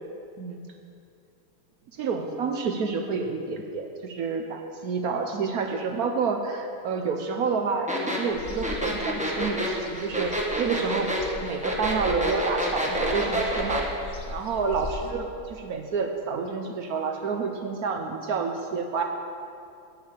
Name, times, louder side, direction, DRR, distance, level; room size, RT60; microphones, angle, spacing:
voice 1, 2.0-13.9 14.3-19.0, right 5 dB, 70° right, 4 dB, 0.9 m, -29 dB
sound 1, 7.9-13.9, equal, 5° right, 0.7 m, -28 dB
sound 2, 8.3-15.1, left 3 dB, 75° left, 0.6 m, -40 dB
9.6 x 6.7 x 8.2 m, 2.5 s
omnidirectional pair, 2.4 m